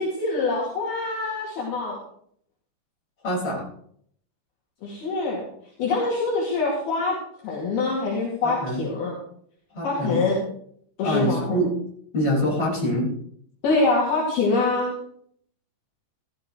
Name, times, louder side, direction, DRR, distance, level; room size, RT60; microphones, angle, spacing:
voice 1, 0.0-2.0 4.8-5.4 5.8-7.2 7.4-9.2 9.8-10.4 11.0-11.6 13.6-14.9, left 3 dB, 60° left, -4 dB, 4.2 m, -24 dB
voice 2, 3.2-3.6 8.6-8.8 9.7-10.2 11.0-11.7 12.1-13.1, equal, 30° left, -4 dB, 6.4 m, -24 dB
15.0 x 14.5 x 3.3 m, 0.66 s
omnidirectional pair, 5.3 m